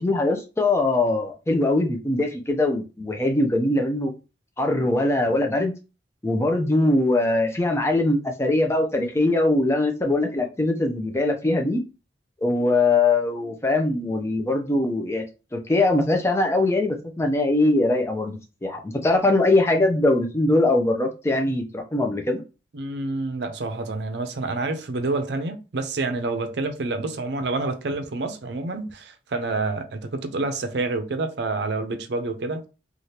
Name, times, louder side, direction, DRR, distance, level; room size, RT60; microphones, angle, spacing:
voice 1, 0.0-4.1 4.6-5.7 6.2-11.8 12.4-15.2 15.5-22.4, left 2 dB, 15° left, 0.5 m, -22 dB
voice 2, 22.7-32.7, right 3 dB, 65° right, 0.5 m, -28 dB
3.2 x 2.4 x 2.8 m
head